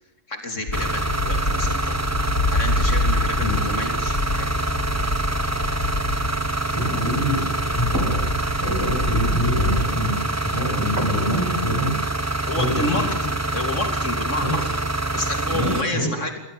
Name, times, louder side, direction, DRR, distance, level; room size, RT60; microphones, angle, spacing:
voice 1, 0.3-2.0 2.5-4.5 12.5-14.6 15.1-16.4, left 2 dB, 65° left, 6 dB, 3.5 m, -29 dB
sound 1, 0.7-9.9, left 2 dB, 90° left, 3.7 m, -26 dB
sound 2, 0.7-15.8, right 2 dB, 15° right, 1.1 m, -26 dB
voice 2, 6.7-10.2 10.4-12.0 12.6-13.1 14.4-14.6 15.5-16.2, equal, 20° left, -2 dB, 7.2 m, -25 dB
sound 3, 7.6-14.7, right 2 dB, 85° right, 6.3 m, -40 dB
28.0 x 22.5 x 6.9 m, 0.86 s
omnidirectional pair, 1.4 m